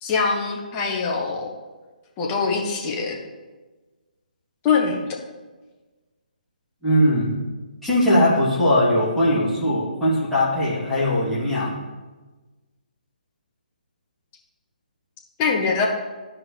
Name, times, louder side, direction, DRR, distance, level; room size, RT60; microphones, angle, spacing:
voice 1, 0.0-1.5 2.2-3.2 4.6-5.2 15.4-15.9, left 5 dB, 25° left, 0 dB, 1.1 m, -23 dB
voice 2, 6.8-7.3 7.8-11.7, left 1 dB, ahead, -14 dB, 3.0 m, -20 dB
13.5 x 4.8 x 3.4 m, 1.2 s
figure-of-eight pair, 140°, 5 cm